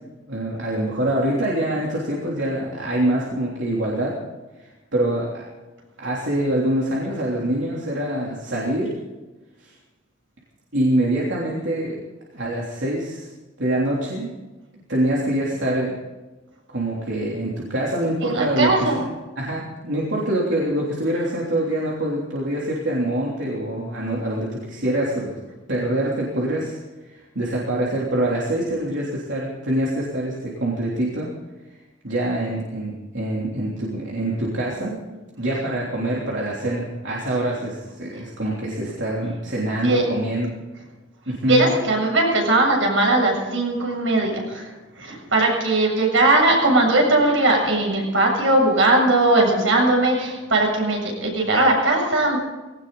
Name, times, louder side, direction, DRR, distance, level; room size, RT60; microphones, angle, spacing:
voice 1, 0.3-4.2 4.6-5.4 6.0-8.9 9.6-9.7 10.7-12.0 12.3-13.3 13.6-14.3 14.7-15.9 16.7-19.0 19.4-25.4 25.7-26.8 27.0-31.3 32.0-35.0 35.4-40.5 41.3-41.8, right 1 dB, 75° right, -4 dB, 3.3 m, -25 dB
voice 2, 18.2-19.0 39.8-40.1 41.4-44.7 45.0-52.4, right 2 dB, 90° right, 0 dB, 7.3 m, -19 dB
19.5 x 18.0 x 4.1 m, 1.2 s
head